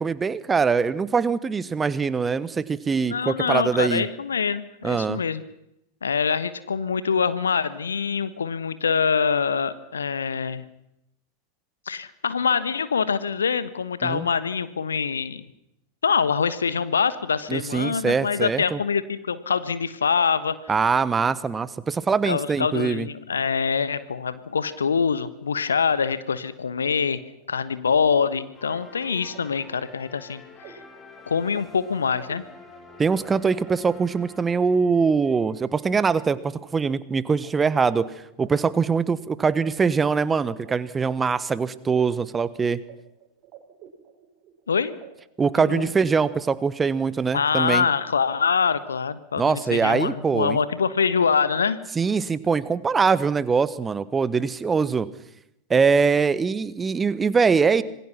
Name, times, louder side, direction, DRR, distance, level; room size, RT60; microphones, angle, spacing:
voice 1, 0.0-4.0 4.8-5.2 14.0-14.3 17.5-18.8 20.7-23.1 33.0-38.1 38.4-42.8 45.4-47.8 49.4-50.6 51.9-55.1 55.7-57.8, right 5 dB, 15° right, 17 dB, 1.2 m, -23 dB
voice 2, 3.0-5.4 6.0-10.6 11.9-15.4 16.0-20.6 22.3-27.2 27.5-30.8 31.3-32.4 44.7-44.9 45.6-45.9 47.3-51.8, left 6 dB, 70° left, 15 dB, 1.3 m, -24 dB
sound 1, 26.4-37.5 37.8-39.3 39.6-39.7 40.0-42.0 42.3-42.9 43.2-44.6 45.0-45.1, right 9 dB, 40° right, 4.9 m, -50 dB
sound 2, 28.6-35.1, left 4 dB, 20° left, 3.1 m, -48 dB
26.5 x 20.5 x 6.0 m, 0.84 s
figure-of-eight pair, 90°, 0 cm